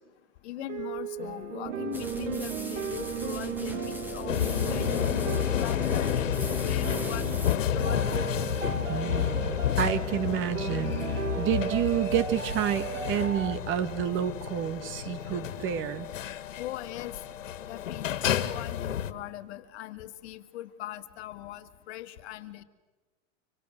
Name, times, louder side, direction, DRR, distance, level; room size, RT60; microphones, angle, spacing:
voice 1, 0.4-4.9 5.5-7.3 7.7-8.4 16.6-17.2 17.7-22.6, left 14 dB, 60° left, 10 dB, 2.0 m, -40 dB
sound 1, 0.6-13.6, right 7 dB, 85° right, 2.5 m, -36 dB
sound 2, 1.9-7.6, equal, 5° right, 2.4 m, -41 dB
sound 3, 4.3-19.1, left 10 dB, 85° left, 1.9 m, -30 dB
voice 2, 8.9-16.1, right 10 dB, 30° right, 12 dB, 1.7 m, -29 dB
26.0 x 25.5 x 7.9 m, 1.2 s
hypercardioid pair, 130°, 37 cm